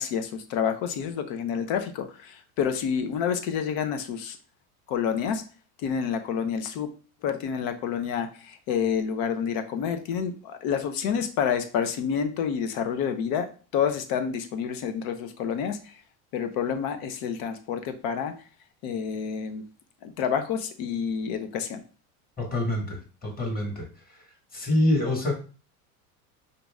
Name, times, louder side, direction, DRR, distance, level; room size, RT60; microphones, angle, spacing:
voice 1, 0.0-4.4 4.9-5.4 5.8-6.9 7.2-16.0 16.3-18.4 18.8-19.6 20.0-21.8, left 7 dB, 55° left, 9 dB, 0.9 m, -28 dB
voice 2, 22.4-23.9 24.5-25.3, left 1 dB, 20° left, 1 dB, 1.6 m, -26 dB
5.3 x 2.9 x 3.5 m, 0.36 s
supercardioid pair, 120°, 43 cm